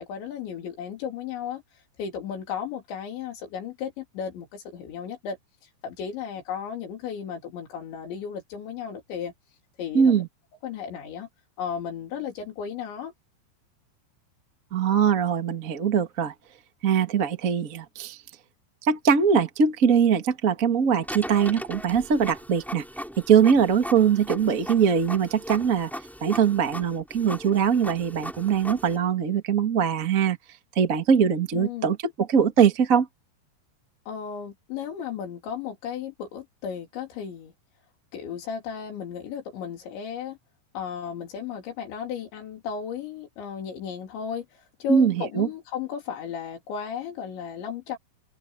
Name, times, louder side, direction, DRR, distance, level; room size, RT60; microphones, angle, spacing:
voice 1, 0.0-5.4 5.8-9.3 9.8-10.2 10.6-11.3 11.6-13.1 31.5-31.9 34.1-37.5 38.1-40.4 40.7-48.0, left 7 dB, 85° left, 5.6 m, -34 dB
voice 2, 9.9-10.3 14.7-16.3 16.8-18.2 18.8-22.8 23.2-25.9 26.2-30.4 30.7-33.1 44.9-45.5, right 7 dB, 50° right, 1.0 m, -22 dB
Printer, 21.0-29.0, equal, ahead, 3.7 m, -38 dB
omnidirectional pair, 5.1 m